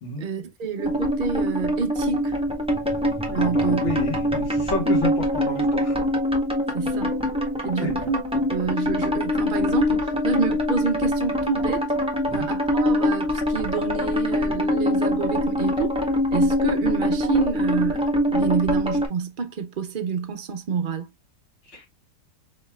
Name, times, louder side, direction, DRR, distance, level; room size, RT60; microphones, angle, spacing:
voice 1, 0.2-2.4 3.3-3.8 6.7-7.2 7.6-11.9 12.3-16.0 16.3-21.1, right 6 dB, 60° right, 0.5 m, -28 dB
sound 1, 0.8-19.1, equal, 5° right, 0.9 m, -24 dB
voice 2, 3.4-5.9 7.8-8.1 12.3-12.5 21.7-21.9, left 1 dB, 45° left, 1.8 m, -30 dB
5.2 x 3.0 x 2.2 m
omnidirectional pair, 1.7 m